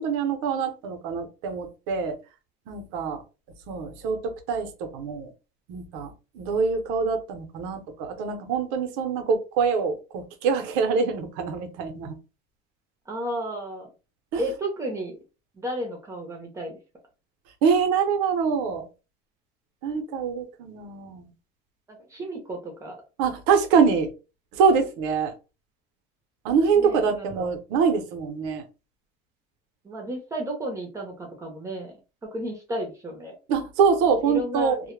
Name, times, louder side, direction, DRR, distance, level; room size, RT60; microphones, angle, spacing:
voice 1, 0.0-2.2 2.7-3.2 3.7-5.3 5.7-12.2 14.3-14.4 17.6-18.9 19.8-21.3 23.2-24.1 24.5-25.3 26.4-28.7 33.5-34.7, right 5 dB, 90° right, 0.6 m, -24 dB
voice 2, 13.1-13.9 14.4-15.2 15.5-16.8 21.9-23.0 26.8-27.5 29.8-33.3 34.2-34.9, right 1 dB, 15° right, 0.5 m, -33 dB
2.1 x 2.1 x 3.0 m
cardioid pair, 155°, 21 cm